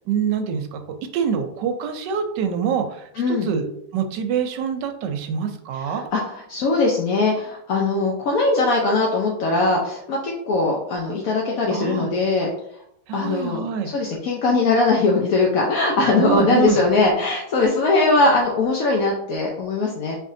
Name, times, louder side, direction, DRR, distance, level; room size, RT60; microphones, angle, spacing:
voice 1, 0.1-0.8 1.1-6.1 11.7-12.1 13.1-13.9 16.2-16.8, right 7 dB, 75° right, 6 dB, 1.2 m, -25 dB
voice 2, 3.1-3.5 5.7-12.5 13.1-20.2, left 3 dB, 65° left, -1 dB, 0.9 m, -21 dB
4.2 x 3.5 x 2.6 m, 0.72 s
omnidirectional pair, 2.0 m